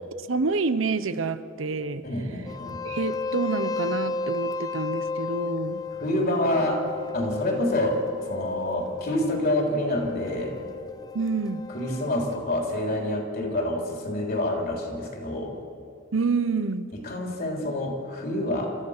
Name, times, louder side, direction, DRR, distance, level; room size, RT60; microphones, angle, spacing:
voice 1, 0.0-2.1 2.8-5.8 11.1-11.6 16.1-16.9, right 4 dB, 75° right, 12 dB, 0.8 m, -28 dB
voice 2, 2.0-2.8 6.0-6.9 7.1-10.5 11.7-15.6 17.0-18.8, left 1 dB, 50° left, 1 dB, 3.8 m, -27 dB
sound 1, 2.5-12.4, left 4 dB, 20° left, 0.6 m, -33 dB
29.0 x 14.0 x 6.7 m, 2.5 s
head